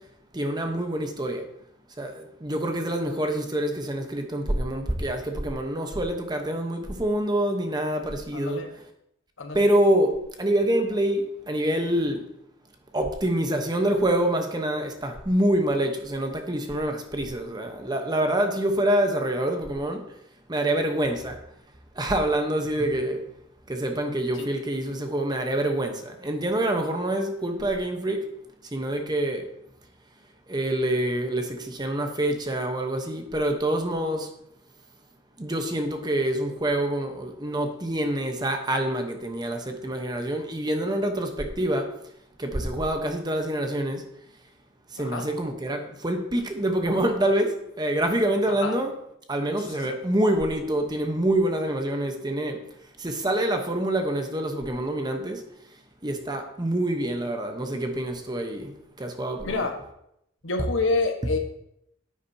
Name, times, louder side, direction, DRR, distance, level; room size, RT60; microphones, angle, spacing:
voice 1, 0.3-1.5 2.0-8.7 9.5-12.3 12.9-20.1 20.5-21.4 21.9-23.2 23.7-28.3 28.7-29.5 30.5-34.3 35.4-41.9 42.4-44.1 44.9-48.9 49.3-55.4 56.0-59.7, right 1 dB, 20° right, 1.0 m, -26 dB
voice 2, 8.3-8.7 9.4-9.7 24.4-24.5 45.0-45.3 48.6-48.8 49.6-49.9 59.4-59.8 60.4-61.4, left 3 dB, 85° left, 1.3 m, -28 dB
10.0 x 8.4 x 2.8 m
head